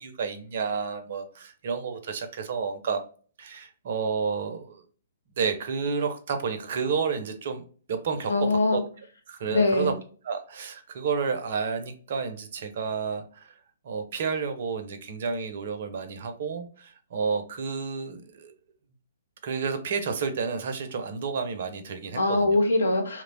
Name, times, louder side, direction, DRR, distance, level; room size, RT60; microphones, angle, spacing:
voice 1, 0.0-3.0 3.4-4.8 5.4-8.3 8.7-8.8 9.3-9.9 10.2-13.6 13.8-18.5 19.4-22.6, right 5 dB, 50° right, 8 dB, 0.5 m, -31 dB
voice 2, 8.3-8.8 9.5-9.9 22.1-23.2, left 2 dB, 65° left, 3 dB, 0.7 m, -23 dB
2.9 x 2.0 x 2.5 m, 0.41 s
figure-of-eight pair, 120°, 0 cm